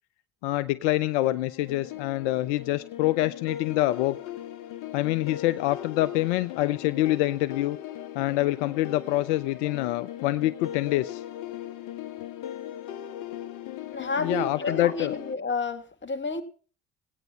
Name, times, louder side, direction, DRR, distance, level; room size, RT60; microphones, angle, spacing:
voice 1, 0.4-4.2 4.9-7.8 8.1-11.2 14.2-15.1, left 16 dB, 80° left, 14 dB, 0.5 m, -26 dB
sound 1, 1.2-15.3, left 11 dB, 65° left, 1.3 m, -39 dB
voice 2, 13.9-16.4, left 3 dB, 35° left, 7 dB, 2.1 m, -30 dB
17.0 x 9.2 x 5.5 m, 0.41 s
hypercardioid pair, 55°, 35 cm